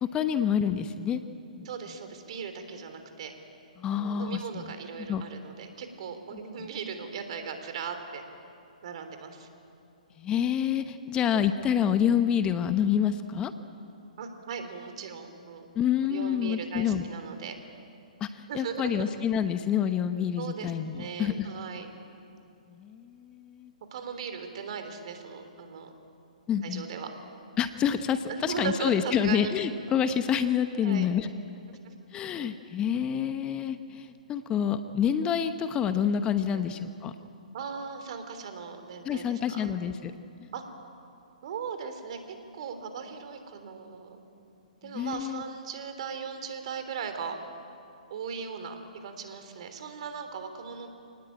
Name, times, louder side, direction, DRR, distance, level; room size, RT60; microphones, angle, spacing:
voice 1, 0.1-1.2 1.6-1.7 3.8-4.7 5.1-5.2 10.2-13.5 15.7-17.1 18.2-21.5 22.7-23.7 26.5-26.8 27.6-31.3 32.1-37.1 39.0-40.1 40.4-40.5 44.8-45.4, left 8 dB, 20° left, 10 dB, 0.9 m, -28 dB
voice 2, 1.7-3.3 3.9-8.2 8.8-9.5 14.2-15.7 16.1-17.6 18.5-19.1 20.4-21.9 23.9-25.9 26.6-27.1 28.3-29.5 30.8-31.1 31.4-31.9 36.5-36.7 37.5-39.7 40.5-40.6 41.4-42.2 42.5-44.2 44.8-47.4 48.1-50.9, right 6 dB, 50° right, 7 dB, 3.5 m, -38 dB
28.0 x 19.0 x 9.0 m, 2.6 s
figure-of-eight pair, 130°, 4 cm